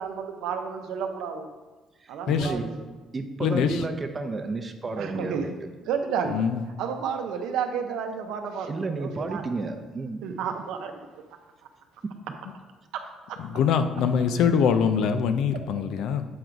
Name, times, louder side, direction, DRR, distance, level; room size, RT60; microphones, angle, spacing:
voice 1, 0.0-1.5 2.1-2.7 5.0-5.5 5.9-6.4 6.8-9.4 10.2-11.2 13.3-13.4, right 7 dB, 85° right, 5 dB, 0.7 m, -31 dB
voice 2, 2.0-2.7 3.1-6.0 8.7-10.2 12.0-12.1, right 3 dB, 30° right, 6 dB, 0.6 m, -32 dB
voice 3, 3.4-3.8 6.3-6.6 13.4-16.2, left 7 dB, 80° left, 9 dB, 0.4 m, -23 dB
7.7 x 3.9 x 4.6 m, 1.2 s
cardioid pair, 100°, 0 cm